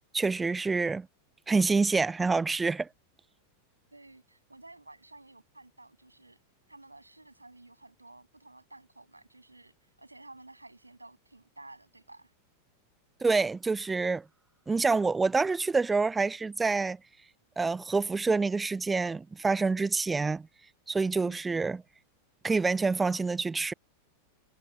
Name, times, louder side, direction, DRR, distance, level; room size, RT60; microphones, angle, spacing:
voice 1, 0.1-1.1 1.5-2.9 13.2-14.2 14.7-17.0 17.6-20.5 20.9-21.8 22.4-23.7, right 4 dB, 10° right, 0.4 m, -27 dB
voice 2, 3.9-6.4 6.7-12.3 21.2-21.4, right 2 dB, 85° right, 7.7 m, -53 dB
figure-of-eight pair, 90°, 0 cm